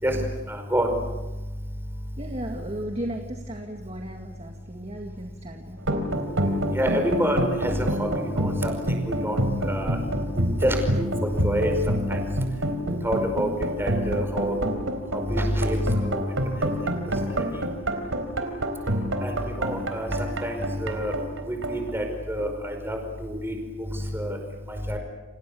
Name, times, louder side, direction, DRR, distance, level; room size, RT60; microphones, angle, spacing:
voice 1, 0.0-0.9 6.7-8.7 9.0-10.0 10.6-11.8 12.1-12.4 13.0-13.5 13.8-14.6 15.3-16.2 16.6-16.7 17.1-17.6 19.2-21.1 21.5-23.6 23.9-24.4 24.7-25.0, equal, 10° right, 4 dB, 5.2 m, -28 dB
voice 2, 2.2-5.8, right 1 dB, 30° right, 3 dB, 2.1 m, -35 dB
sound 1, 5.8-22.7, right 1 dB, 90° right, 4.1 m, -27 dB
30.0 x 27.0 x 7.1 m, 1.1 s
head